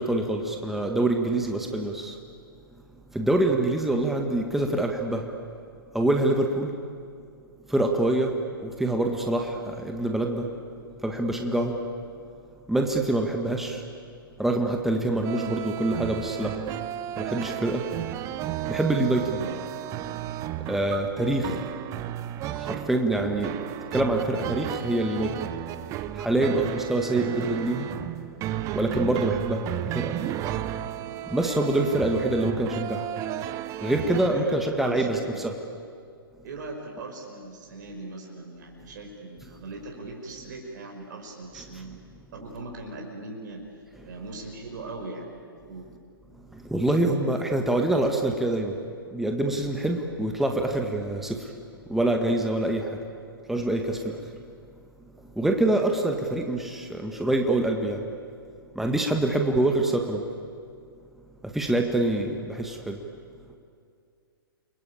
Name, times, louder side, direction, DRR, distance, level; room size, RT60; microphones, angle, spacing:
voice 1, 0.0-2.2 3.1-5.3 5.9-6.7 7.7-10.6 11.0-11.9 12.7-13.8 14.4-16.6 17.2-17.9 18.7-19.4 20.6-21.6 22.5-23.6 23.9-25.5 26.1-27.9 28.7-30.2 31.2-33.1 33.8-35.6 46.5-48.8 49.1-51.5 51.9-53.0 53.5-54.3 55.2-58.0 58.8-60.2 61.4-63.0, right 1 dB, ahead, 2 dB, 1.7 m, -25 dB
sound 1, 15.2-34.3, right 12 dB, 25° right, 1.0 m, -33 dB
voice 2, 34.1-35.4 36.4-42.0 42.3-43.6 44.0-45.4 45.7-45.9, right 2 dB, 50° right, 1 dB, 5.5 m, -39 dB
29.5 x 21.5 x 8.7 m, 2.3 s
figure-of-eight pair, 125°, 12 cm